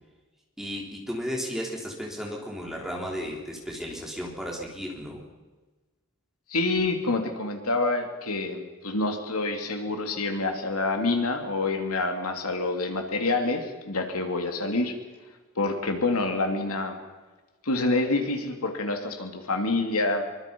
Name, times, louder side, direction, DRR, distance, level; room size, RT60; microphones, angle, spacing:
voice 1, 0.6-5.2, equal, ahead, -1 dB, 4.2 m, -34 dB
voice 2, 6.5-15.0 15.6-17.0 17.6-20.3, left 2 dB, 85° left, 4 dB, 3.0 m, -27 dB
25.5 x 24.0 x 5.5 m, 1.3 s
head